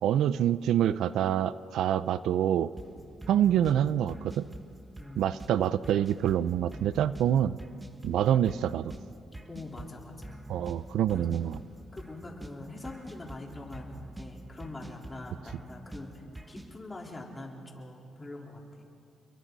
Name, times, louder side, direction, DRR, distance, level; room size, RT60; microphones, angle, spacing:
voice 1, 0.0-2.7 3.3-4.4 5.2-7.6 8.0-8.9 10.5-11.6, right 10 dB, 80° right, 15 dB, 0.5 m, -26 dB
sound 1, 2.8-16.8, right 1 dB, 10° right, 1.3 m, -46 dB
voice 2, 5.0-5.3 9.5-10.4 11.1-11.2 11.9-18.9, left 2 dB, 20° left, -1 dB, 4.0 m, -44 dB
30.0 x 23.0 x 4.1 m, 2.5 s
cardioid pair, 90°, 0 cm